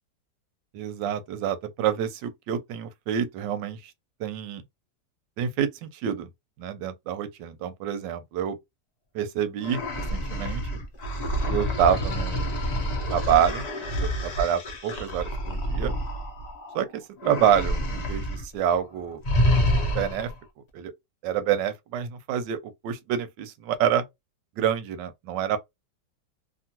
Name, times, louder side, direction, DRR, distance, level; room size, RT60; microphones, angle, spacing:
voice 1, 0.7-3.9 4.2-4.6 5.4-6.3 6.6-8.6 9.1-10.6 11.5-13.7 14.0-15.9 16.7-19.2 19.9-20.3 20.7-20.9 21.2-24.0 24.6-25.6, right 9 dB, 90° right, 1.3 m, -27 dB
sound 1, 9.6-16.8 17.2-18.4 18.7-18.9 19.2-20.4, equal, 65° left, 0.4 m, -28 dB
2.9 x 2.4 x 2.8 m
omnidirectional pair, 1.9 m